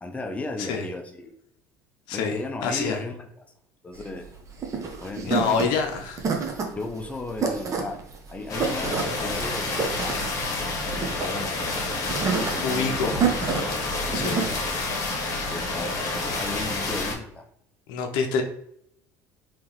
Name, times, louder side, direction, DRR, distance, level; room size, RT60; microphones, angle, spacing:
voice 1, 0.0-1.4 2.1-3.3 3.8-4.3 5.0-5.9 6.7-8.0 8.3-10.3 10.9-11.8 12.4-14.6 15.5-16.0 16.2-17.5, left 2 dB, 15° left, 4 dB, 0.6 m, -35 dB
voice 2, 2.1-3.0 5.3-6.2 12.1-13.1 14.1-14.5 17.9-18.4, left 5 dB, 70° left, 4 dB, 0.6 m, -27 dB
sound 1, 3.9-14.5, right 5 dB, 40° right, 0.9 m, -29 dB
sound 2, 8.5-17.1, left 2 dB, 45° left, 1.2 m, -29 dB
3.7 x 3.2 x 3.1 m, 0.72 s
hypercardioid pair, 80°, 8 cm